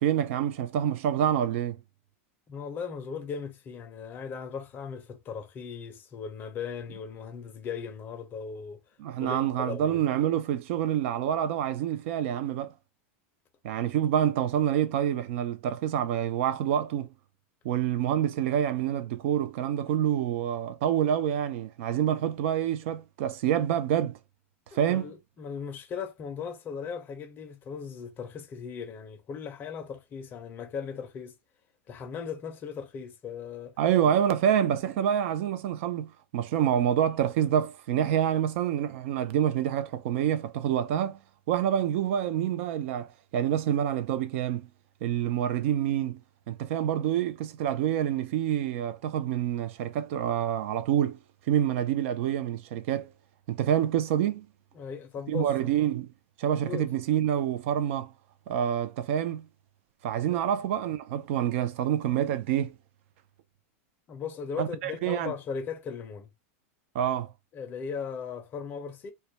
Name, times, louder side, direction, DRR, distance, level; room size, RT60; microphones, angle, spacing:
voice 1, 0.0-1.8 9.0-12.7 13.6-17.1 17.6-24.2 24.7-25.1 33.8-41.2 41.5-44.7 45.0-46.2 46.5-51.2 51.5-53.1 53.5-54.5 55.3-56.1 56.4-58.1 58.5-59.5 60.0-62.8 64.6-65.3 66.9-67.3, right 10 dB, 60° right, 0.4 m, -27 dB
voice 2, 2.5-8.8 9.2-10.0 24.7-31.3 31.9-33.7 54.8-55.5 56.7-56.9 60.3-60.4 64.1-66.3 67.5-69.1, left 6 dB, 25° left, 0.5 m, -38 dB
2.2 x 2.1 x 2.7 m
supercardioid pair, 150°, 8 cm